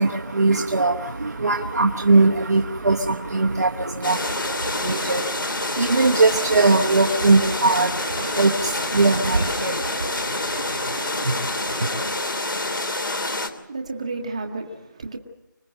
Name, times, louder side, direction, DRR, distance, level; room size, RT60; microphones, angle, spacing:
voice 1, 0.0-12.1, right 3 dB, 55° right, 1.1 m, -21 dB
sound 1, 4.0-13.5, left 2 dB, 80° left, 2.9 m, -27 dB
voice 2, 13.4-15.2, right 3 dB, 20° right, 1.1 m, -32 dB
25.5 x 19.0 x 7.8 m
figure-of-eight pair, 175°, 11 cm